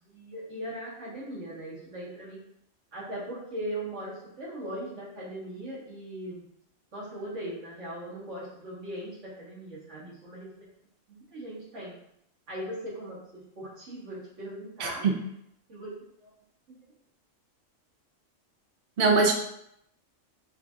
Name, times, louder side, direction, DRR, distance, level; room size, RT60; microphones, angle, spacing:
voice 1, 0.0-2.4 2.9-6.4 6.9-10.5 11.1-11.9 12.5-15.2 15.7-15.9 16.2-16.3, right 1 dB, 70° right, -7 dB, 1.9 m, -39 dB
voice 2, 14.8-15.2 19.0-19.3, right 4 dB, 55° right, 2 dB, 0.8 m, -22 dB
6.7 x 2.7 x 2.4 m, 0.76 s
omnidirectional pair, 1.3 m